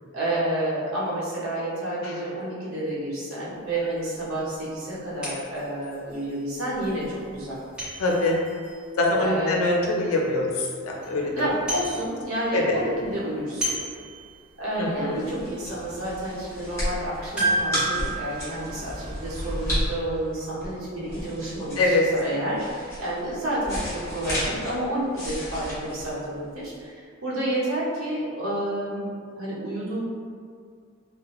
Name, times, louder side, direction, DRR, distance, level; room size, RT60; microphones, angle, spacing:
voice 1, 0.1-7.6 9.2-9.6 11.3-13.8 14.6-29.1 29.4-30.0, right 1 dB, 85° right, -8 dB, 0.8 m, -30 dB
sound 1, 3.7-3.8 4.3-4.4 5.2-9.9 10.4-10.5 10.8-11.1 11.4-12.5 12.8-14.8 15.2-15.3 15.7-15.9 17.4-19.8 20.0-20.1, right 2 dB, 5° right, 1.1 m, -32 dB
voice 2, 8.0-8.4 9.0-11.3 12.5-12.7 14.8-15.3 21.8-22.0, left 2 dB, 90° left, -1 dB, 0.5 m, -23 dB
sound 2, 14.8-26.8, equal, 15° left, 0.8 m, -33 dB
2.4 x 2.1 x 2.9 m, 2.1 s
head